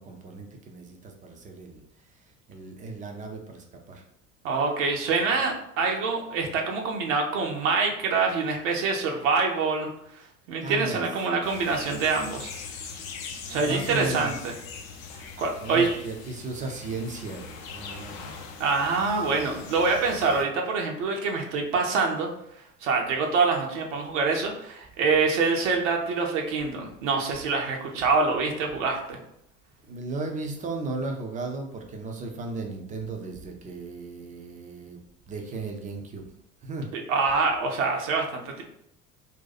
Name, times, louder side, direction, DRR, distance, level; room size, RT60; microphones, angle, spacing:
voice 1, 0.0-1.8 2.5-4.0 10.6-11.0 13.5-14.3 15.6-18.3 29.9-35.0 35.3-36.2 36.6-36.9, right 3 dB, 20° right, 2 dB, 0.5 m, -35 dB
voice 2, 4.4-9.9 10.5-12.5 13.5-14.5 15.4-15.9 18.6-22.3 22.8-29.2 36.9-38.6, right 4 dB, 55° right, 1 dB, 0.7 m, -25 dB
sound 1, 11.4-20.5, left 5 dB, 45° left, 0.6 m, -41 dB
2.7 x 2.2 x 4.0 m, 0.75 s
figure-of-eight pair, 65°, 44 cm